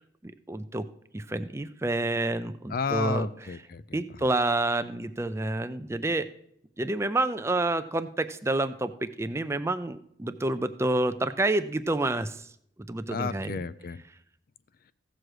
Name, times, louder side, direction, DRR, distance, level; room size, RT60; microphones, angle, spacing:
voice 1, 0.2-0.9 1.1-3.3 3.9-6.3 6.8-12.5 12.8-13.6, right 2 dB, 15° right, 11 dB, 0.4 m, -28 dB
voice 2, 2.7-4.0 13.1-14.0, left 5 dB, 50° left, 15 dB, 0.4 m, -32 dB
15.5 x 6.3 x 4.8 m, 0.71 s
head